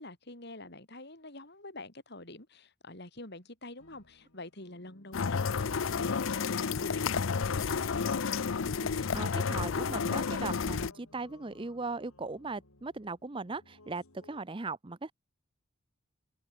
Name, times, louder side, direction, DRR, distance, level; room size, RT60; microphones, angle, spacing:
voice 1, 0.0-8.4, left 2 dB, 50° left, 4.5 m, -46 dB
sound 1, 3.8-14.4, left 2 dB, 90° left, 3.5 m, -59 dB
sound 2, 5.1-10.9, left 5 dB, 65° left, 0.6 m, -31 dB
voice 2, 8.8-15.1, right 3 dB, 25° right, 0.6 m, -38 dB
head